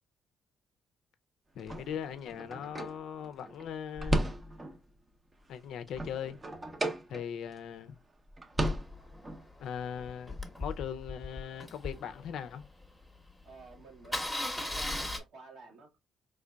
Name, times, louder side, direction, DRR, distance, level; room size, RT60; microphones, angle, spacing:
voice 1, 1.5-4.2 5.5-6.4 7.1-8.0 9.6-12.7, left 8 dB, 75° left, 0.4 m, -39 dB
sound 1, 1.6-4.9 5.3-7.6 7.9-8.0 8.3-9.4, right 1 dB, 25° right, 0.7 m, -35 dB
Engine starting, 8.6-12.8 13.3-13.4 13.6-13.7 14.0-15.2, left 2 dB, ahead, 0.9 m, -38 dB
voice 2, 13.4-16.0, right 3 dB, 80° right, 1.5 m, -52 dB
3.8 x 3.3 x 2.2 m
cardioid pair, 90°, 0 cm